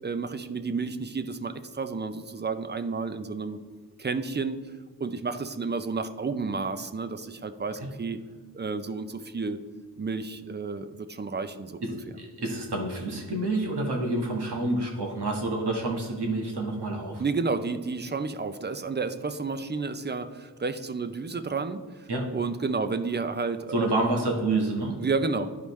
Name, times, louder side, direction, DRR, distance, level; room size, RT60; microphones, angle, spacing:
voice 1, 0.0-3.6 4.0-4.6 5.0-8.2 8.5-9.6 10.0-12.0 17.2-23.9 25.0-25.5, right 4 dB, 25° right, 11 dB, 0.5 m, -31 dB
voice 2, 11.8-17.2 22.1-22.3 23.7-25.0, right 2 dB, 80° right, 0 dB, 1.5 m, -28 dB
11.0 x 5.1 x 3.1 m, 1.5 s
wide cardioid pair, 95°, 40 cm